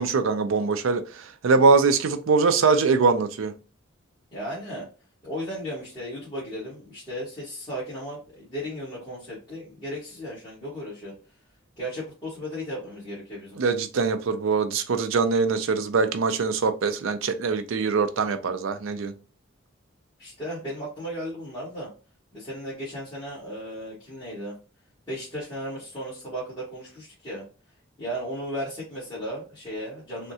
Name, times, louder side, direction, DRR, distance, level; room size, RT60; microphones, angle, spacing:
voice 1, 0.0-3.5 13.6-19.1, right 4 dB, 70° right, 0.4 m, -23 dB
voice 2, 4.3-4.8 5.2-11.1 11.8-13.6 20.2-21.9 22.3-24.5 25.1-27.4 28.0-30.3, equal, 20° left, 1.4 m, -35 dB
3.5 x 2.1 x 2.7 m
head